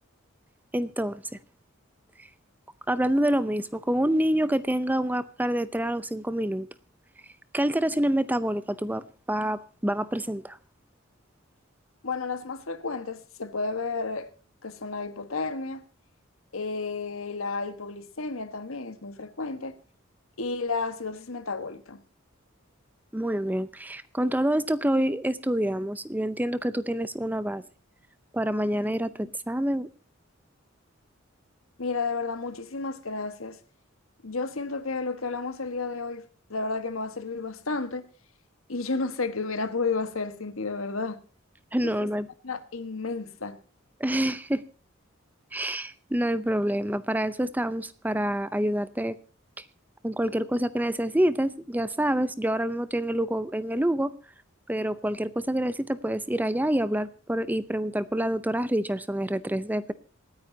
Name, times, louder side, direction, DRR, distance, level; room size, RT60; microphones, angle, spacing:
voice 1, 0.7-1.2 2.9-6.7 7.5-9.0 9.3-10.6 23.1-27.6 28.3-29.9 41.7-42.3 44.0-44.6 45.5-49.2 50.0-54.1 54.7-59.9, right 1 dB, 10° right, 0.6 m, -27 dB
voice 2, 12.0-14.3 14.6-15.8 16.5-19.8 20.4-22.0 31.8-33.6 34.2-36.2 36.5-38.0 38.7-41.2 41.8-42.1 42.4-43.6, left 4 dB, 80° left, 1.4 m, -32 dB
27.0 x 9.7 x 2.8 m
head